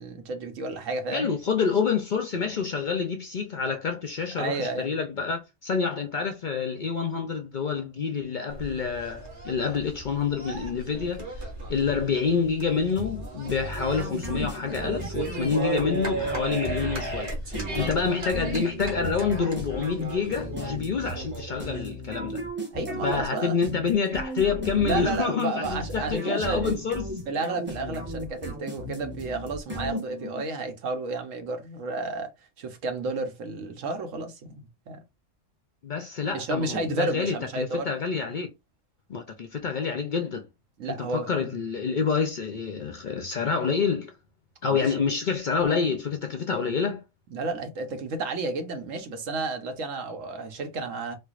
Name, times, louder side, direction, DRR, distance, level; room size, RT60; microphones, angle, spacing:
voice 1, 0.0-1.3 4.4-4.9 17.6-17.9 22.7-23.6 24.8-26.8 27.3-32.3 32.6-35.0 36.3-38.0 40.8-41.5 44.7-44.9 47.3-51.1, right 3 dB, 85° right, 1.2 m, -32 dB
voice 2, 1.1-11.4 11.7-22.4 23.0-27.1 35.8-38.5 39.1-40.4 40.8-44.1 44.6-47.0, left 5 dB, 55° left, 0.5 m, -27 dB
sound 1, 8.5-21.8, right 2 dB, 60° right, 1.7 m, -36 dB
sound 2, 13.0-30.5, equal, 10° right, 1.0 m, -35 dB
4.5 x 2.5 x 2.4 m
omnidirectional pair, 1.3 m